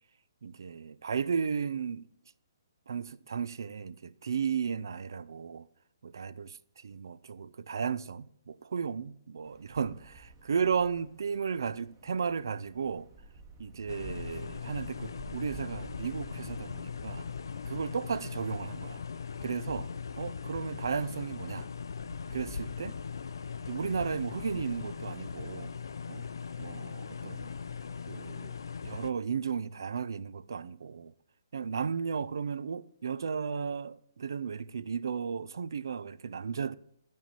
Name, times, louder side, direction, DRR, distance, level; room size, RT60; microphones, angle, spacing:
voice 1, 0.4-2.1 2.9-5.7 6.0-6.6 6.8-13.1 13.6-17.3 17.6-19.0 19.4-19.9 20.2-21.7 22.3-23.0 23.7-25.7 26.1-26.3 26.6-27.5 28.1-28.6 28.8-31.1 31.5-36.7, right 6 dB, 70° right, 0.4 m, -34 dB
Wind, 9.4-28.0, right 3 dB, 15° right, 1.0 m, -54 dB
sound 1, 13.9-29.1, left 6 dB, 80° left, 0.4 m, -40 dB
10.0 x 6.2 x 4.2 m
hypercardioid pair, 170°, 2 cm